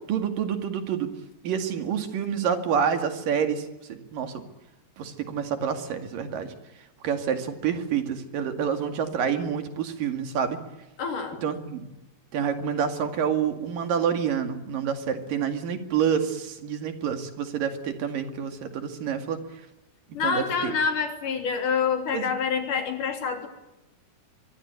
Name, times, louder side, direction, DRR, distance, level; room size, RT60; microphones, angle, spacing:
voice 1, 0.1-1.1 1.4-4.4 5.0-6.5 7.0-10.6 11.4-11.8 12.3-19.4 20.2-20.7 22.1-22.3, right 7 dB, 75° right, 7 dB, 3.8 m, -28 dB
voice 2, 11.0-11.4 20.1-23.5, left 6 dB, 65° left, 6 dB, 4.7 m, -27 dB
23.5 x 23.5 x 9.5 m, 0.97 s
omnidirectional pair, 3.9 m